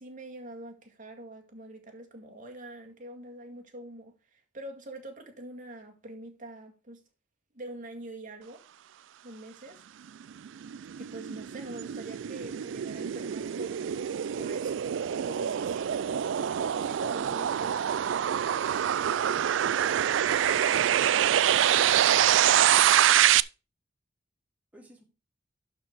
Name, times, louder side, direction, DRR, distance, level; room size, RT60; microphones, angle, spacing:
voice 1, 0.0-7.0 7.5-8.6 9.2-9.8 11.0-13.8 14.4-16.2 16.4-18.2, right 1 dB, 45° right, 2.0 m, -44 dB
sound 1, 10.2-23.4, right 10 dB, 85° right, 0.4 m, -25 dB
voice 2, 21.9-23.3 24.7-25.0, equal, 10° right, 2.2 m, -53 dB
11.5 x 4.7 x 4.8 m
head